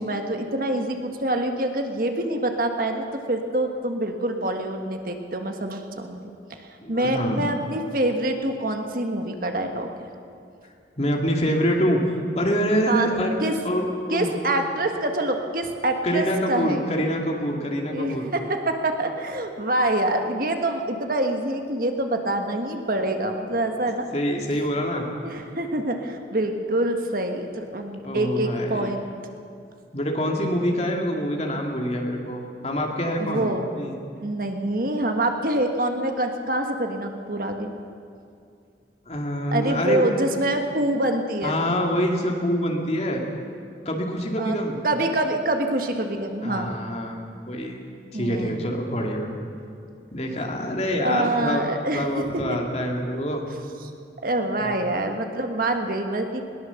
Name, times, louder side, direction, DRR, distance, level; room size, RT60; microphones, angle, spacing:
voice 1, 0.0-6.2 6.5-9.9 12.9-13.1 13.4-13.6 14.1-17.0 17.8-24.1 25.2-29.1 33.1-33.7 34.2-37.7 39.5-41.6 44.4-44.6 44.8-46.8 48.1-48.6 51.0-52.6 54.2-56.4, right 1 dB, 50° right, 5 dB, 1.5 m, -26 dB
voice 2, 6.8-7.5 11.0-12.0 12.3-13.4 13.6-14.3 16.0-18.3 23.6-23.9 24.1-25.1 28.0-28.9 29.9-33.5 33.7-33.9 39.1-40.1 41.4-43.2 43.8-44.8 46.4-47.2 47.5-47.8 48.1-49.3 50.1-51.6 51.9-53.4 54.6-54.7, equal, 35° left, 1 dB, 2.5 m, -25 dB
21.0 x 18.5 x 7.1 m, 2.4 s
head